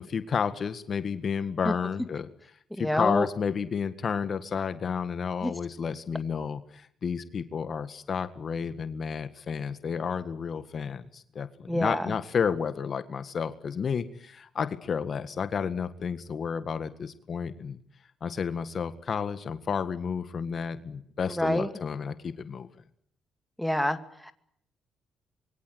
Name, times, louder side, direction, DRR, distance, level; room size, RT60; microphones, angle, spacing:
voice 1, 0.0-2.3 2.8-17.8 18.2-22.7, left 6 dB, 50° left, 11 dB, 1.8 m, -31 dB
voice 2, 2.8-3.3 5.4-5.5 11.7-12.1 21.3-21.7 23.6-24.3, equal, 5° left, 9 dB, 2.4 m, -27 dB
25.5 x 23.0 x 8.0 m, 0.67 s
cardioid pair, 90°, 0 cm